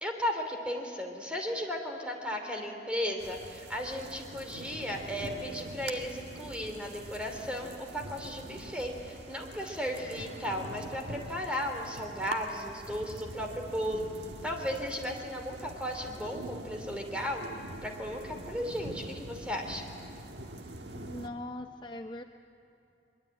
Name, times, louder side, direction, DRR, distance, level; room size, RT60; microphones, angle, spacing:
voice 1, 0.0-14.1 14.4-17.4 17.8-19.8, equal, 5° right, 3 dB, 2.9 m, -35 dB
sound 1, 3.2-21.3, right 1 dB, 75° right, 1.4 m, -44 dB
voice 2, 20.9-22.2, left 1 dB, 25° left, 6 dB, 0.6 m, -41 dB
22.5 x 22.5 x 9.1 m, 2.8 s
head